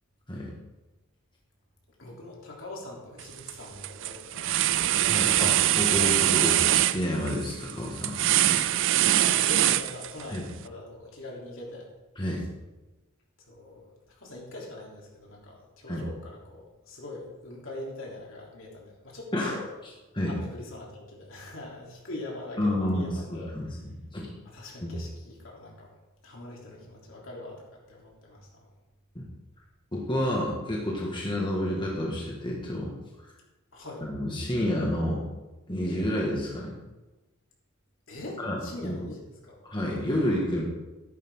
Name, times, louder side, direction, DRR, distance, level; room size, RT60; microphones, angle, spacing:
voice 1, 2.0-4.8 9.1-11.9 13.4-19.6 20.3-23.5 24.4-25.9 26.2-28.7 33.7-34.0 38.1-39.6, left 1 dB, 65° left, -3 dB, 3.5 m, -42 dB
sound 1, 3.2-3.5 3.8-10.4, right 13 dB, 60° right, 0.5 m, -23 dB
voice 2, 5.0-8.7 10.3-10.4 12.2-12.4 15.9-16.1 19.3-19.5 20.1-20.4 22.6-23.8 24.1-24.3 24.8-25.0 29.2-29.3 29.9-32.9 34.1-35.2 35.7-36.7 38.4-39.0 39.7-40.6, left 1 dB, 20° left, -3 dB, 1.9 m, -29 dB
14.0 x 11.0 x 3.8 m, 1.1 s
head